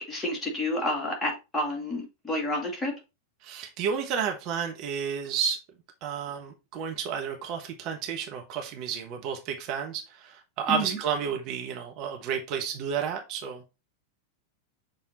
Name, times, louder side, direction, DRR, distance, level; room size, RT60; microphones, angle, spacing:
voice 1, 0.0-2.9 10.7-11.0, left 1 dB, 15° left, 2.2 m, -30 dB
voice 2, 3.4-5.6 6.0-13.6, right 7 dB, 40° right, 1.2 m, -31 dB
6.5 x 3.7 x 4.1 m
figure-of-eight pair, 90°, 0 cm